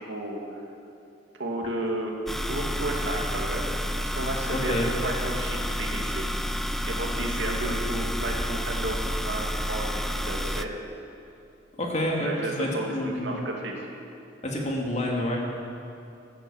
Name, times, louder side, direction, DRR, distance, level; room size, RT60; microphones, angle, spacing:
voice 1, 0.1-0.4 1.4-2.2 2.5-3.6 3.9-4.7 5.0-6.2 6.9-10.7 12.2-13.9, right 1 dB, 75° right, 0 dB, 2.5 m, -32 dB
sound 1, 2.3-10.6, equal, ahead, 0.5 m, -30 dB
voice 2, 4.5-4.9 11.8-13.4 14.4-15.4, left 1 dB, 40° left, -1 dB, 2.6 m, -28 dB
16.5 x 10.5 x 7.2 m, 2.7 s
head